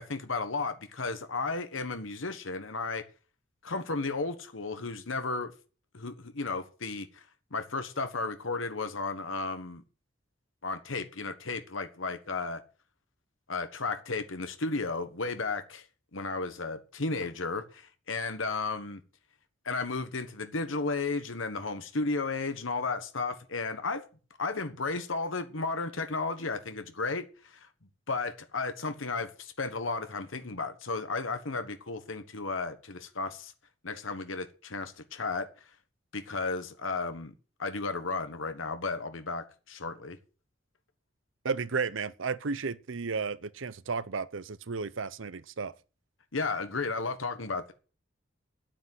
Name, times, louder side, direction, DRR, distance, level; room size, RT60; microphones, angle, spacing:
voice 1, 0.0-3.0 3.6-5.5 5.9-7.2 7.5-9.8 10.6-12.6 13.5-15.9 16.1-19.0 19.6-24.1 24.4-27.7 28.1-33.5 33.8-35.5 36.1-37.3 37.6-40.2 46.3-47.7, left 3 dB, 85° left, 1.4 m, -34 dB
voice 2, 41.4-45.7, right 5 dB, 80° right, 0.7 m, -33 dB
10.0 x 8.7 x 7.9 m
head